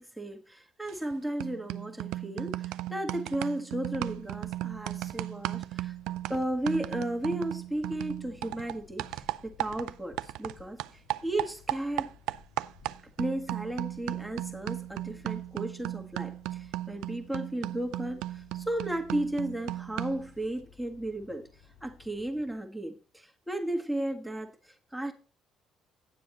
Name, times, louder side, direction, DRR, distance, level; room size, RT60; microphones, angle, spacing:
voice 1, 0.0-5.9 6.3-12.1 13.2-21.4 21.8-25.1, right 1 dB, 5° right, 1.6 m, -34 dB
sound 1, 0.9-1.1 1.4-10.5 10.8-20.3, right 16 dB, 85° right, 0.3 m, -36 dB
sound 2, 3.9-22.6, left 6 dB, 70° left, 6.3 m, -58 dB
9.7 x 7.4 x 4.2 m
cardioid pair, 90°, 0 cm